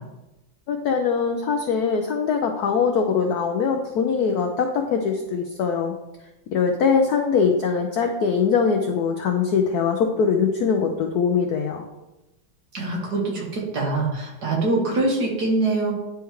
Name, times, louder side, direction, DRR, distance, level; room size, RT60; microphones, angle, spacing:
voice 1, 0.7-5.9 6.5-11.8, left 6 dB, 80° left, 3 dB, 0.8 m, -22 dB
voice 2, 12.7-15.9, right 2 dB, 55° right, -3 dB, 1.9 m, -24 dB
10.0 x 3.5 x 3.1 m, 0.98 s
omnidirectional pair, 2.2 m